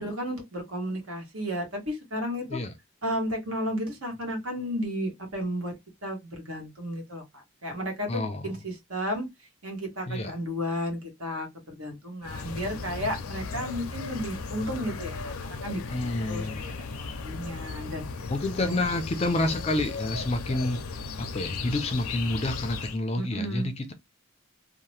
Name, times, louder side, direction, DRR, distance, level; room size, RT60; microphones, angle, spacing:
voice 1, 0.0-2.6 3.0-5.7 6.0-7.2 7.6-9.3 9.6-15.8 16.3-18.0 18.6-18.8 23.2-23.7, equal, 75° right, 1.2 m, -33 dB
voice 2, 8.1-8.4 10.1-10.3 15.9-16.6 18.3-23.9, left 2 dB, 30° left, 0.4 m, -29 dB
sound 1, 12.2-23.0, left 4 dB, 85° left, 0.5 m, -36 dB
2.8 x 2.1 x 3.1 m
head